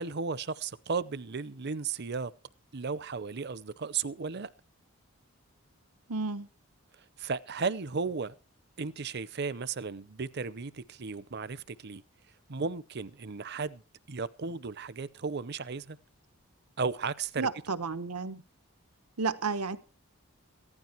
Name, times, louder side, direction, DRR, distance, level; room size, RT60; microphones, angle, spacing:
voice 1, 0.0-2.3 2.7-4.5 7.2-8.4 8.8-12.0 12.5-13.8 14.1-16.0 16.8-17.5, right 5 dB, 45° right, 0.6 m, -35 dB
voice 2, 6.1-6.5 17.4-18.4 19.2-19.8, right 4 dB, 85° right, 1.1 m, -32 dB
15.5 x 12.0 x 4.5 m
head